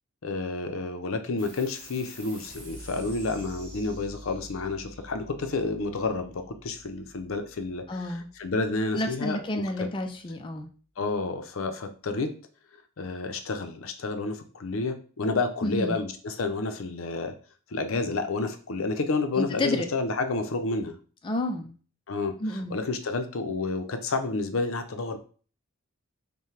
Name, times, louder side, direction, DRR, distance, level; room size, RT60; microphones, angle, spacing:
voice 1, 0.2-9.4 9.8-9.9 11.0-12.3 13.0-17.3 17.7-21.0 22.1-25.2, left 3 dB, 70° left, 7 dB, 0.6 m, -30 dB
sound 1, 1.4-8.3, equal, 25° right, 1.9 m, -47 dB
voice 2, 7.9-8.3 8.9-10.7 15.6-16.0 19.4-19.9 21.2-21.7 22.4-22.7, left 1 dB, 25° left, 4 dB, 0.4 m, -30 dB
5.6 x 2.2 x 3.2 m, 0.40 s
head